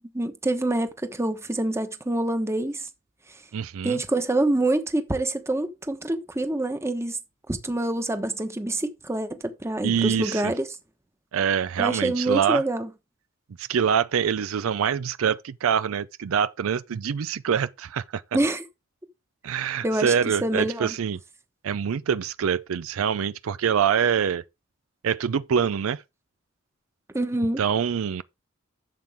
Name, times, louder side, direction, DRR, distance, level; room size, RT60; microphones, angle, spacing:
voice 1, 0.1-2.9 3.8-7.2 7.5-10.7 11.8-12.9 18.3-18.6 19.8-20.1 20.4-20.9 27.1-27.6, right 1 dB, 15° right, 1.1 m, -26 dB
voice 2, 3.5-4.0 9.8-10.5 11.3-12.6 13.6-18.2 19.4-21.2 21.6-24.4 25.0-26.0 27.6-28.2, right 7 dB, 80° right, 0.4 m, -25 dB
11.5 x 7.5 x 3.5 m
head